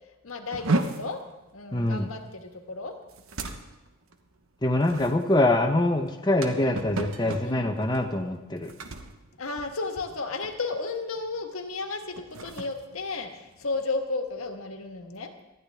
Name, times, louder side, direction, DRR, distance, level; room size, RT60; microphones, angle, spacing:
voice 1, 0.2-1.2 1.5-3.0 6.6-6.9 7.4-7.7 9.4-15.3, left 3 dB, 80° left, 5 dB, 1.5 m, -33 dB
sound 1, 0.5-10.1 10.4-10.8 11.2-11.4 12.0-13.9, right 2 dB, 80° right, 1.2 m, -35 dB
voice 2, 1.7-2.1 4.6-8.7, left 1 dB, 20° left, 4 dB, 0.8 m, -24 dB
19.0 x 13.5 x 3.5 m, 1.1 s
head